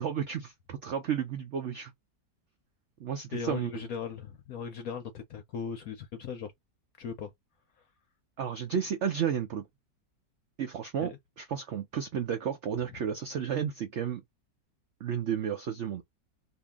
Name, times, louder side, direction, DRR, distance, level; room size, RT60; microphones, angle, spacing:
voice 1, 0.0-1.9 3.0-3.7 8.4-9.7 10.6-14.2 15.0-16.0, right 8 dB, 65° right, 0.7 m, -32 dB
voice 2, 3.3-6.5 7.0-7.3 11.0-11.2, left 6 dB, 65° left, 0.9 m, -38 dB
2.7 x 2.7 x 3.5 m
omnidirectional pair, 1.9 m